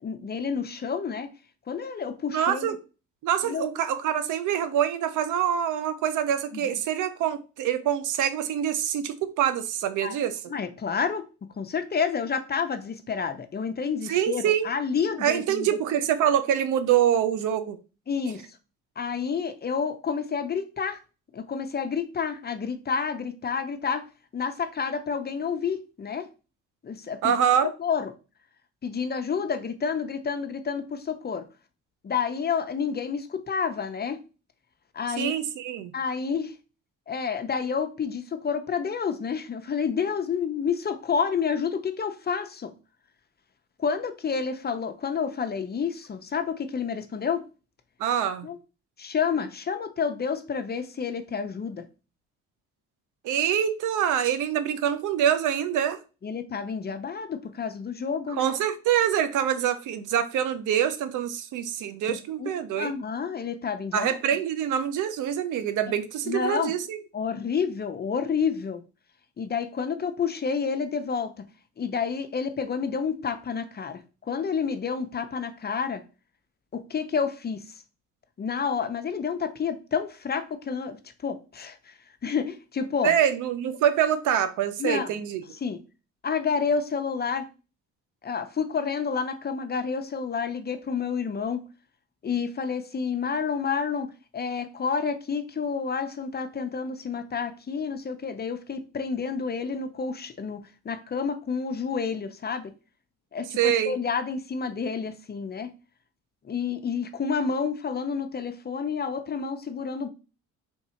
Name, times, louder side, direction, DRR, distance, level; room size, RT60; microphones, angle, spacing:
voice 1, 0.0-1.3 1.7-2.7 3.4-3.7 6.5-6.8 10.0-10.2 10.5-11.2 11.6-15.7 18.1-18.4 19.0-21.0 21.3-24.1 24.3-26.3 26.8-27.4 27.8-28.1 28.8-31.5 32.0-34.2 34.9-35.3 35.9-36.5 37.1-42.7 43.8-47.4 48.4-48.6 49.0-51.8 56.2-58.5 62.1-62.5 62.8-64.1 65.9-66.0 66.3-66.7 67.1-68.8 69.4-71.3 71.8-76.0 76.7-77.6 78.4-81.0 81.2-81.9 82.2-83.1 84.8-85.1 85.6-85.8 86.2-87.5 88.2-91.6 92.2-100.6 100.8-102.7 103.3-105.7 106.4-110.1, left 6 dB, 35° left, 0.7 m, -29 dB
voice 2, 2.3-2.7 3.2-10.4 14.0-14.7 15.2-17.8 27.2-27.7 35.1-35.9 48.0-48.5 53.2-56.0 58.4-62.9 63.9-67.0 83.0-85.4 103.6-104.0, right 9 dB, 80° right, 0.6 m, -25 dB
3.6 x 2.7 x 4.3 m
cardioid pair, 90°, 30 cm